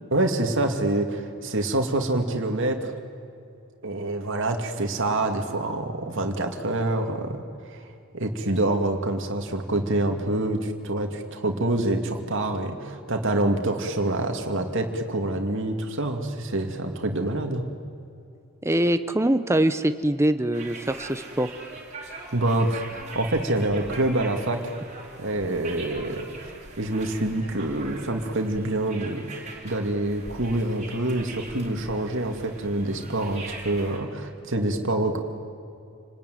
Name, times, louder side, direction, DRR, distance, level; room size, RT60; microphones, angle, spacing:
voice 1, 0.1-2.9 3.8-7.4 7.7-7.8 8.1-17.6 22.3-24.6 25.2-26.5 26.8-29.2 29.6-35.2, right 1 dB, 60° right, 4 dB, 2.5 m, -26 dB
voice 2, 18.6-21.5, right 1 dB, 15° right, 10 dB, 0.9 m, -23 dB
sound 1, 20.5-34.0, right 3 dB, 35° right, 4.9 m, -42 dB
29.0 x 20.0 x 9.5 m, 2.6 s
head